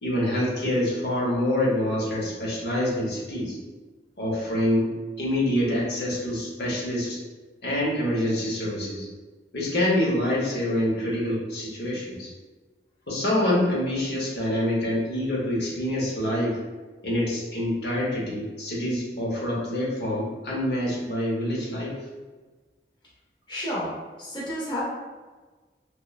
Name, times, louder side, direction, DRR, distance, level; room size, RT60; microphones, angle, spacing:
voice 1, 0.0-3.6 4.2-4.9 5.2-7.2 7.6-9.1 9.5-12.3 13.1-16.6 17.0-22.0, left 1 dB, 75° left, -5 dB, 0.7 m, -26 dB
voice 2, 23.5-23.9 24.2-24.8, equal, 25° left, -7 dB, 0.5 m, -30 dB
2.9 x 2.1 x 2.2 m, 1.3 s
head